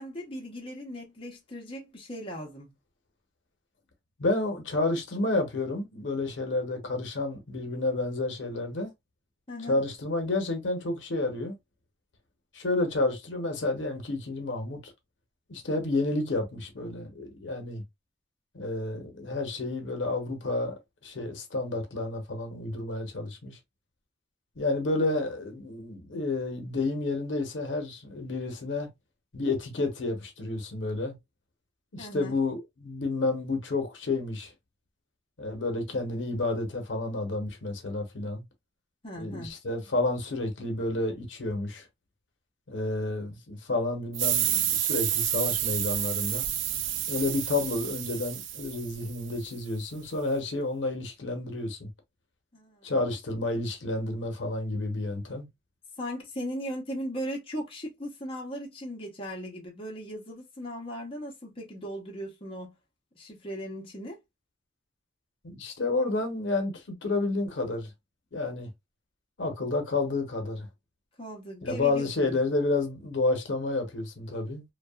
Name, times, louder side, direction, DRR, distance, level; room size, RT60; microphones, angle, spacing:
voice 1, 0.0-2.8 9.5-9.8 32.0-32.4 39.0-39.5 52.5-52.9 56.0-62.7 63.1-64.2 71.2-72.4, equal, 30° left, 0.8 m, -38 dB
voice 2, 4.2-8.9 9.7-11.5 12.5-14.9 15.5-17.8 18.5-23.6 24.6-28.9 29.3-31.2 31.9-34.5 35.4-38.4 39.2-41.8 42.7-46.5 47.1-51.9 52.8-55.5 65.4-67.9 68.3-68.7 69.4-70.7 71.6-74.6, left 2 dB, 85° left, 0.8 m, -30 dB
sound 1, 44.1-49.4, right 10 dB, 85° right, 0.4 m, -29 dB
2.7 x 2.3 x 2.3 m
head